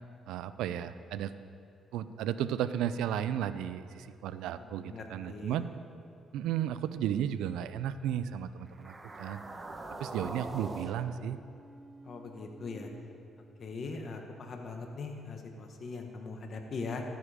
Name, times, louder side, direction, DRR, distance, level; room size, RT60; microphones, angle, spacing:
voice 1, 0.3-1.3 1.9-5.7 6.3-9.4 10.0-11.4, right 10 dB, 90° right, 13 dB, 0.4 m, -34 dB
voice 2, 4.6-5.6 12.0-12.9 13.6-17.0, left 4 dB, 55° left, 3 dB, 1.4 m, -41 dB
sound 1, 8.7-13.0, right 2 dB, 25° right, 1.0 m, -44 dB
13.5 x 9.4 x 5.1 m, 2.5 s
cardioid pair, 90°, 0 cm